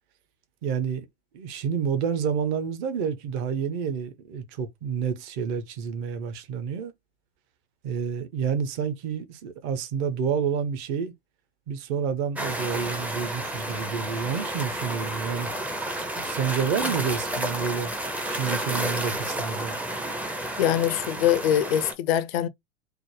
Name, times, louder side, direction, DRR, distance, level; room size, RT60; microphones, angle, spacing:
voice 1, 0.6-1.1 1.3-6.9 7.8-11.1 11.7-15.5 16.2-17.9 18.3-19.8, right 7 dB, 45° right, 0.8 m, -29 dB
sound 1, 12.4-21.9, right 1 dB, 5° right, 0.5 m, -31 dB
voice 2, 20.6-22.5, left 11 dB, 55° left, 0.5 m, -23 dB
3.4 x 2.0 x 3.1 m
figure-of-eight pair, 90°, 35 cm